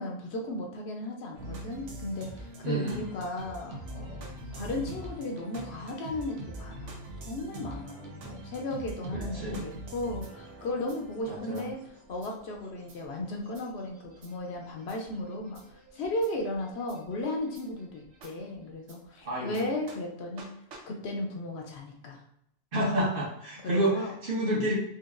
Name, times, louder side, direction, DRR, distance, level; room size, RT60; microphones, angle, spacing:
voice 1, 0.0-11.8 12.1-20.5 20.9-22.2 23.6-24.1 24.4-24.7, left 1 dB, 70° left, 1 dB, 0.9 m, -35 dB
sound 1, 1.3-18.9 19.5-19.6 19.9-20.0 20.4-20.5 20.7-20.8, right 1 dB, 85° right, 1.1 m, -44 dB
voice 2, 2.6-3.0 9.1-9.6 11.3-11.7 19.2-19.7 22.7-24.0 24.2-24.7, right 1 dB, 50° right, -4 dB, 1.1 m, -29 dB
4.5 x 2.5 x 2.4 m, 0.74 s
omnidirectional pair, 1.2 m